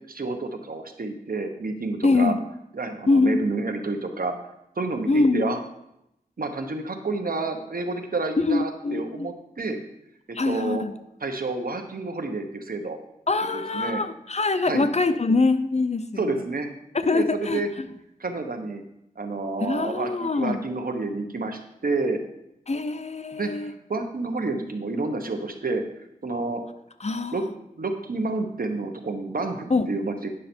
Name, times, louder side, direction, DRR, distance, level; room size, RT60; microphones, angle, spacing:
voice 1, 0.1-2.3 2.7-4.3 4.8-5.6 6.4-9.8 10.3-10.8 11.2-13.0 13.5-14.0 14.6-14.9 16.2-16.7 17.1-17.7 18.2-18.8 19.2-22.2 23.3-25.8 26.2-26.6 27.3-27.5 27.8-30.3, right 3 dB, 70° right, 6 dB, 1.1 m, -29 dB
voice 2, 2.0-2.4 3.1-3.4 5.1-5.6 8.4-9.3 10.4-10.9 13.3-16.4 17.0-17.9 19.6-20.6 22.7-23.7 27.0-27.4 29.7-29.9, left 3 dB, 45° left, 11 dB, 0.6 m, -24 dB
9.8 x 6.5 x 4.4 m, 0.81 s
wide cardioid pair, 55°, 16 cm